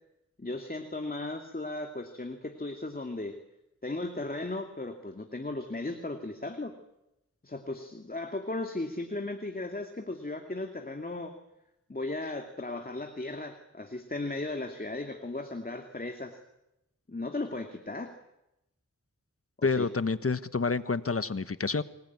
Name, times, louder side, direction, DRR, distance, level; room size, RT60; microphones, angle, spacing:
voice 1, 0.4-3.4 3.8-6.7 7.4-11.4 11.9-16.4 17.1-18.1 19.6-19.9, left 2 dB, 30° left, 5 dB, 2.5 m, -36 dB
voice 2, 19.6-21.8, left 4 dB, 50° left, 13 dB, 1.3 m, -28 dB
25.5 x 20.5 x 9.5 m, 0.88 s
wide cardioid pair, 60°, 30 cm